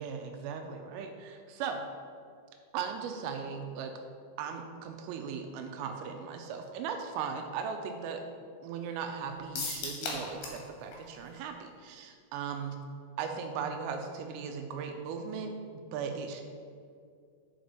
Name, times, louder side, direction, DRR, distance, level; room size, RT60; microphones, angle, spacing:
voice 1, 0.0-1.8 2.7-3.9 4.4-8.2 8.6-12.8 13.2-15.6 15.9-16.4, right 6 dB, 85° right, 4 dB, 3.2 m, -38 dB
sound 1, 9.6-10.7 10.9-11.0 11.4-11.5, left 4 dB, 60° left, 2.8 m, -36 dB
10.0 x 5.2 x 5.1 m, 2.3 s
omnidirectional pair, 5.8 m